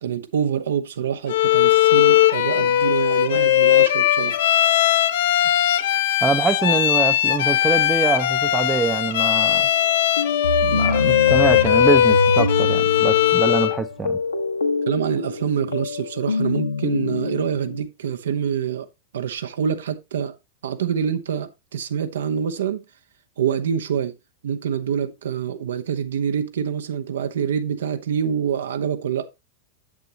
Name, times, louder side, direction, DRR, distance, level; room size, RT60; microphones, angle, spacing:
voice 1, 0.0-4.4 14.9-18.9 19.1-20.4 20.6-22.8 23.4-24.1 24.4-29.3, right 8 dB, 65° right, 0.9 m, -26 dB
Bowed string instrument, 1.3-13.8, left 12 dB, 55° left, 0.7 m, -18 dB
voice 2, 6.2-9.7 10.6-14.2, right 4 dB, 15° right, 0.7 m, -24 dB
sound 1, 9.4-17.8, left 2 dB, 75° left, 1.2 m, -26 dB
8.5 x 7.9 x 3.0 m
figure-of-eight pair, 90°, 0 cm